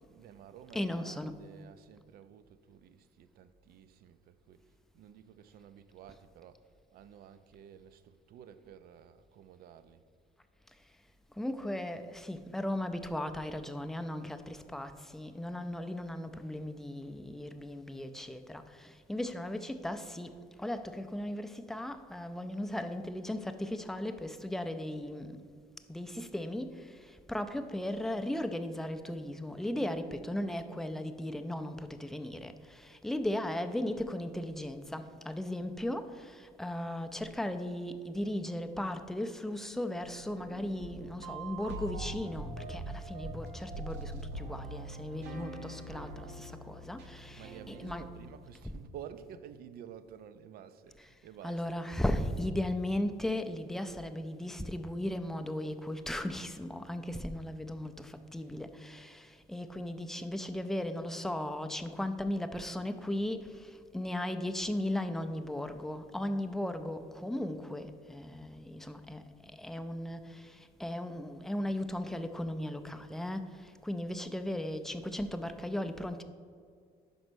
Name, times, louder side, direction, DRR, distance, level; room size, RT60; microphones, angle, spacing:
voice 1, 0.1-4.6 4.9-6.6 6.9-10.0 47.3-51.6, right 9 dB, 65° right, 0.5 m, -51 dB
voice 2, 0.7-1.4 11.4-25.4 25.9-48.1 48.6-48.7 51.0-51.1 51.4-76.2, left 1 dB, ahead, 0.4 m, -37 dB
sound 1, 40.0-48.3, right 2 dB, 80° right, 0.9 m, -43 dB
5.3 x 5.0 x 6.2 m
cardioid pair, 110°, 17 cm